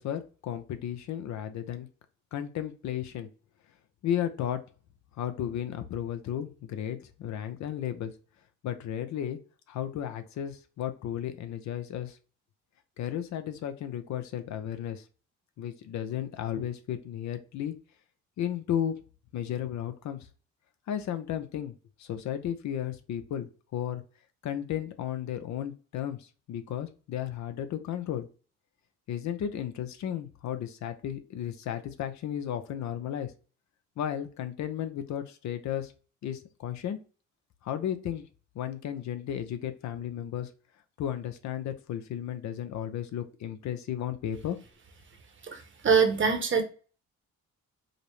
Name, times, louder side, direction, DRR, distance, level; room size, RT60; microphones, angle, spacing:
voice 1, 0.0-1.9 2.3-3.3 4.0-4.6 5.2-8.1 8.6-9.4 9.7-12.2 13.0-15.0 15.6-17.7 18.4-18.9 19.3-20.3 20.9-21.7 22.0-24.0 24.4-28.3 29.1-33.3 34.0-35.9 36.2-37.0 37.6-38.2 38.5-40.5 41.0-44.6, left 10 dB, 65° left, 9 dB, 0.6 m, -34 dB
voice 2, 45.4-46.6, right 6 dB, 40° right, 6 dB, 0.9 m, -24 dB
5.0 x 2.0 x 3.1 m, 0.36 s
cardioid pair, 90°, 30 cm